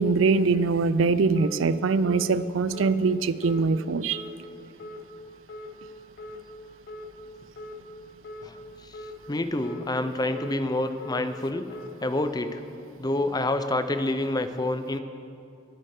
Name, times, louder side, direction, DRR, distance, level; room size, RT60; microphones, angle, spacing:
voice 1, 0.0-4.2, right 4 dB, 85° right, 15 dB, 0.5 m, -23 dB
sound 1, 1.4-1.6 2.0-2.2 2.7-2.9 3.4-3.6 4.1-4.3 4.8-5.0 5.5-5.7 6.2-6.4 6.9-7.1 7.6-7.8 8.2-8.5 8.9-9.1 9.6-9.8 10.3-10.5 11.0-11.2 11.7-11.9, left 1 dB, 55° left, 1.4 m, -40 dB
voice 2, 9.3-11.7 12.0-12.6 13.0-15.0, left 2 dB, 20° left, 9 dB, 0.6 m, -27 dB
21.0 x 8.8 x 5.0 m, 2.5 s
head